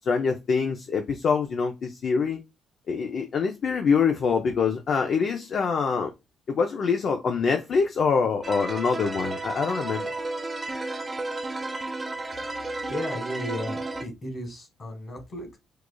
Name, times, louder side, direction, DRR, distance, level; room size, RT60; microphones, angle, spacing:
voice 1, 0.0-2.4 2.9-6.1 6.5-10.1, left 5 dB, 60° left, 0.5 m, -25 dB
sound 1, 8.4-14.0, right 2 dB, 25° right, 0.5 m, -32 dB
voice 2, 12.9-15.6, equal, 40° left, 1.5 m, -35 dB
4.6 x 2.4 x 2.2 m
cardioid pair, 90°, 0 cm